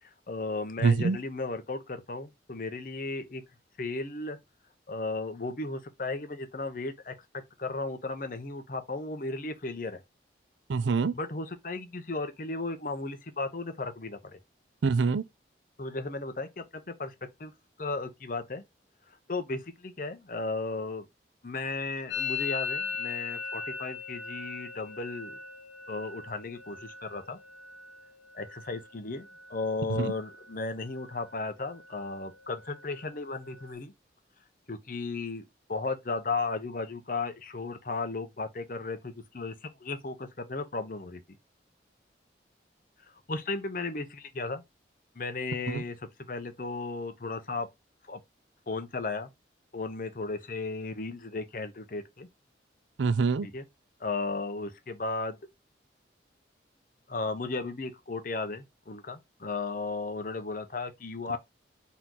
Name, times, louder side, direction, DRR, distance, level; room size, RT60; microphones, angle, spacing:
voice 1, 0.0-3.4 3.8-4.4 4.9-10.0 11.1-14.4 15.8-17.1 17.4-17.5 17.8-18.6 19.3-21.0 21.4-25.4 25.9-27.4 28.3-33.9 34.7-41.2 43.3-44.6 45.2-47.7 48.1-48.2 48.7-49.3 49.7-52.3 53.4-53.6 54.0-55.4 57.1-61.4, left 3 dB, 45° left, 0.8 m, -35 dB
voice 2, 0.8-1.2 10.7-11.1 14.8-15.2 29.9-30.1 45.7-45.8 53.0-53.5, right 4 dB, 85° right, 0.5 m, -25 dB
Musical instrument, 22.1-29.7 30.0-30.6 30.8-31.4 31.7-33.7, left 5 dB, 80° left, 1.0 m, -39 dB
4.3 x 2.9 x 3.7 m
head